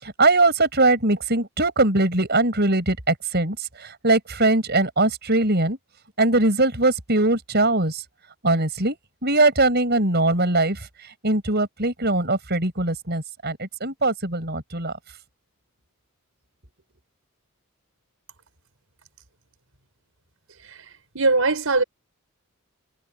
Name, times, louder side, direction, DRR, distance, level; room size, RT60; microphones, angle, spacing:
voice 1, 0.0-5.8 6.2-8.0 8.4-9.0 9.2-10.8 11.2-14.9, right 2 dB, 50° right, 6.4 m, -21 dB
voice 2, 20.6-21.8, right 3 dB, 70° right, 5.3 m, -22 dB
head